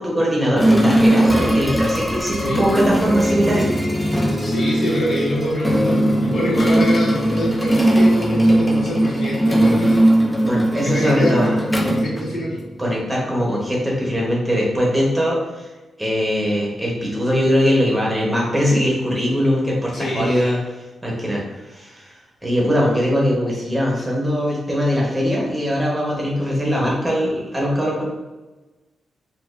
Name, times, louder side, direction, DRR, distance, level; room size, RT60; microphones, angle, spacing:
voice 1, 0.0-3.7 10.4-11.6 12.8-15.4 16.0-22.1 22.4-28.0, equal, 10° right, -4 dB, 0.9 m, -21 dB
sound 1, 0.6-12.8, right 1 dB, 5° left, 0.4 m, -19 dB
voice 2, 2.3-2.7 4.4-10.1 10.8-12.6 19.9-20.5, equal, 70° left, -6 dB, 1.3 m, -25 dB
4.0 x 2.4 x 2.5 m, 1.1 s
wide cardioid pair, 150°, 0 cm